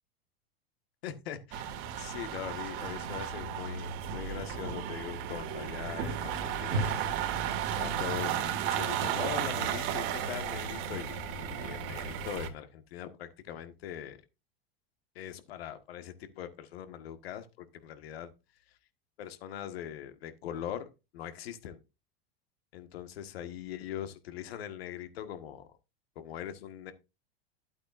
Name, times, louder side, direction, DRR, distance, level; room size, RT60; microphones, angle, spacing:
voice 1, 1.0-1.7 2.0-7.4 7.8-8.4 8.7-14.2 15.1-18.3 19.2-20.9 21.1-21.8 22.7-25.7 26.1-26.9, left 10 dB, 80° left, 1.6 m, -41 dB
car arrives and another exits, 1.5-12.5, right 8 dB, 60° right, 2.2 m, -34 dB
12.0 x 8.5 x 2.5 m
hypercardioid pair, 110°, 30 cm